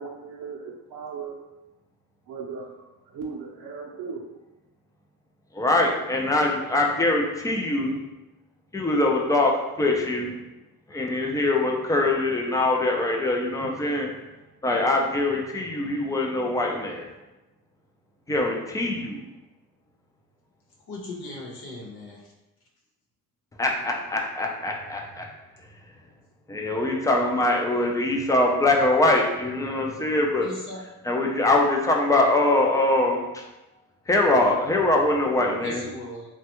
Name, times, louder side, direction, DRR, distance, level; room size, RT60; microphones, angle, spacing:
voice 1, 0.0-1.4 2.3-4.2, right 5 dB, 60° right, -2 dB, 0.6 m, -37 dB
voice 2, 5.5-8.0 8.7-9.5 9.8-10.4 10.9-14.1 14.6-17.1 18.3-19.2 23.6-25.3 26.5-30.5 31.0-33.2 34.1-35.8, left 2 dB, 10° left, 0 dB, 0.3 m, -23 dB
voice 3, 20.9-22.2 30.4-30.8 35.6-36.3, left 1 dB, 75° left, -2 dB, 1.0 m, -37 dB
3.2 x 2.3 x 2.9 m, 1.0 s
cardioid pair, 115°, 37 cm